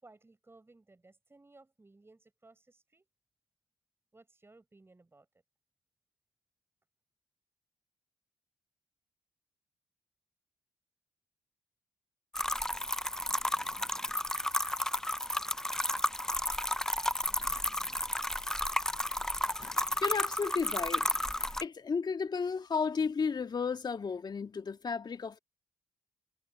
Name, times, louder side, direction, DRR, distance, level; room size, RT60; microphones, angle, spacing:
voice 1, 0.0-3.1 4.1-5.3, right 2 dB, 25° right, 6.2 m, -59 dB
sound 1, 12.3-21.6, left 1 dB, 5° left, 0.5 m, -32 dB
voice 2, 19.6-25.4, left 5 dB, 45° left, 2.4 m, -34 dB
hypercardioid pair, 40°, 10 cm